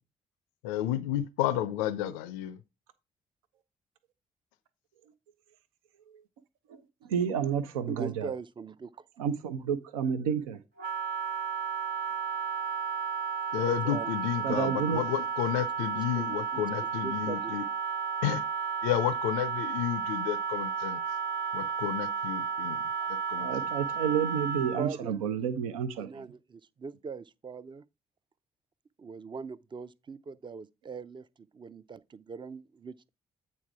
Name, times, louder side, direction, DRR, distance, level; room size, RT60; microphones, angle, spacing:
voice 1, 0.6-2.6 13.5-17.6 18.2-18.4 18.8-21.0 21.5-22.8 23.3-23.5, left 11 dB, 75° left, 0.4 m, -31 dB
voice 2, 6.7-8.3 9.2-10.6 14.4-15.1 23.4-26.3, right 7 dB, 80° right, 0.6 m, -30 dB
voice 3, 7.9-8.9 13.6-14.1 15.9-17.6 23.0-23.1 24.8-25.1 26.0-27.8 29.0-31.3 31.5-33.1, right 5 dB, 25° right, 0.5 m, -41 dB
Wind instrument woodwind instrument, 10.8-24.9, right 6 dB, 60° right, 0.9 m, -33 dB
8.6 x 4.1 x 4.7 m
figure-of-eight pair, 40°, 17 cm